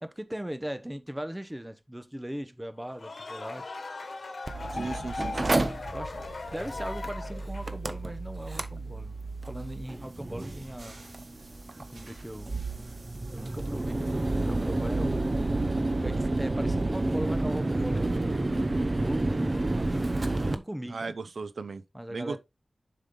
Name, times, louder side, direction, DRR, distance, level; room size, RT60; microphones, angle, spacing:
voice 1, 0.0-3.8 4.9-5.1 5.9-6.2 6.5-9.1 9.5-11.0 11.9-12.5 13.3-15.5 16.0-18.4 19.0-20.1 20.4-21.2 21.9-22.4, equal, 10° right, 0.9 m, -39 dB
sound 1, 2.8-7.8, left 3 dB, 70° left, 1.3 m, -39 dB
Mechanical fan, 4.5-20.6, right 2 dB, 35° right, 0.8 m, -30 dB
voice 2, 4.7-5.6 20.9-21.8 22.1-22.4, right 4 dB, 80° right, 0.6 m, -36 dB
sound 2, 8.9-16.5, right 2 dB, 60° right, 2.5 m, -55 dB
7.3 x 5.5 x 3.8 m
wide cardioid pair, 95°, 0 cm